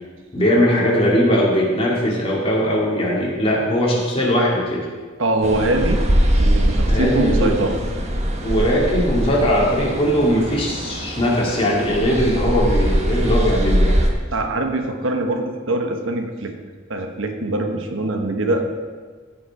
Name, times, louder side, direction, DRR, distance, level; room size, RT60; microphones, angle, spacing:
voice 1, 0.3-4.9 6.9-7.5 8.4-14.0, equal, 30° left, -4 dB, 2.6 m, -19 dB
voice 2, 5.2-6.0 6.3-7.8 14.3-16.5 16.9-18.6, right 2 dB, 70° right, 4 dB, 1.1 m, -23 dB
sound 1, 5.4-14.1, equal, 35° right, 1.1 m, -21 dB
16.0 x 5.9 x 4.9 m, 1.5 s
head